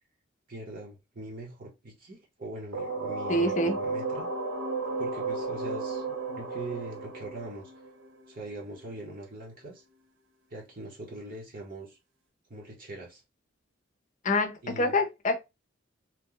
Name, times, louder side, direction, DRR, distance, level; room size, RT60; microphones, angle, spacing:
voice 1, 0.5-4.3 5.0-7.7 8.3-9.8 10.5-12.0 12.5-13.2 14.6-15.0, right 2 dB, 45° right, 0.9 m, -42 dB
sound 1, 2.7-8.4, right 3 dB, 70° right, 0.9 m, -33 dB
voice 2, 3.3-3.8 14.2-15.4, left 1 dB, 35° left, 0.6 m, -26 dB
2.9 x 2.2 x 3.7 m
head